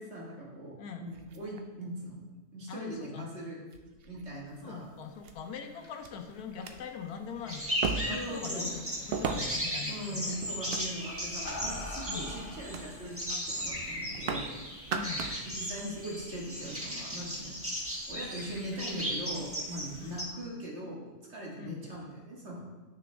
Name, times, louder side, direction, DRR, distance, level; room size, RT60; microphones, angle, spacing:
voice 1, 0.0-2.2 2.5-3.6 4.0-4.9 8.1-8.8 9.9-14.6 15.6-17.6 18.1-22.6, right 1 dB, 45° right, -3 dB, 1.9 m, -40 dB
sound 1, 1.1-2.1 3.0-3.1 3.7-4.3 5.2-5.3 6.0-6.1 6.5-6.7 7.8-8.3 9.1-9.7 10.4-11.3 11.8-12.1 12.7-12.9 13.2-13.4 13.6-14.5 14.8-15.4 15.8-15.9, right 5 dB, 60° right, 0.6 m, -36 dB
voice 2, 2.7-3.3 4.6-7.6 7.9-10.4 12.1-12.3 14.9-15.3 20.0-20.2 21.6-21.8, left 6 dB, 80° left, 6 dB, 1.3 m, -42 dB
sound 2, 5.3-8.2 8.6-9.0 10.3-10.5 11.1-13.2, left 2 dB, 45° left, 1.6 m, -45 dB
sound 3, 7.5-20.2, equal, 10° right, 1.1 m, -37 dB
8.7 x 6.1 x 3.4 m, 1.3 s
omnidirectional pair, 1.6 m